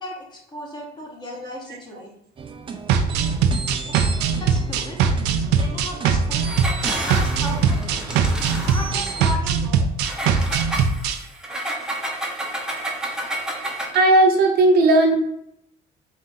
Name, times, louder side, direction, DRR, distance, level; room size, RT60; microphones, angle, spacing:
voice 1, 0.0-2.1 3.8-5.0 5.5-6.5 6.8-8.2 8.6-9.9, left 1 dB, 25° left, -1 dB, 1.3 m, -35 dB
sound 1, 2.4-9.3, right 5 dB, 30° right, 0.4 m, -34 dB
sound 2, 2.9-11.2, right 6 dB, 85° right, 0.4 m, -21 dB
Engine, 6.4-9.2 10.0-14.1, right 1 dB, 5° right, 0.8 m, -30 dB
voice 2, 13.9-15.1, right 2 dB, 65° right, 2 dB, 0.9 m, -15 dB
3.9 x 2.7 x 3.7 m, 0.75 s
cardioid pair, 110°, 17 cm